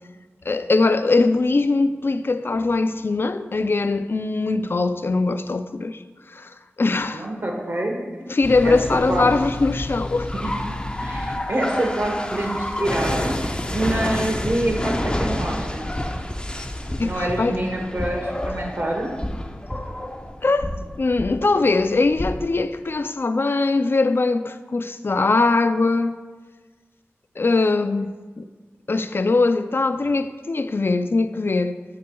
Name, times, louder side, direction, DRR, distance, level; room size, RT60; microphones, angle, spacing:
voice 1, 0.5-6.0 6.3-7.3 8.3-10.3 17.0-17.6 20.4-26.2 27.4-28.5 28.9-31.8, left 3 dB, 55° left, 0.4 m, -21 dB
voice 2, 7.1-8.0 8.6-8.8 9.1-9.3 10.4-10.5 11.0-15.9 17.0-19.1, right 1 dB, 50° right, 1.1 m, -26 dB
sound 1, 8.4-22.6, left 1 dB, 20° left, 0.6 m, -29 dB
8.3 x 7.8 x 2.3 m
wide cardioid pair, 50°, 5 cm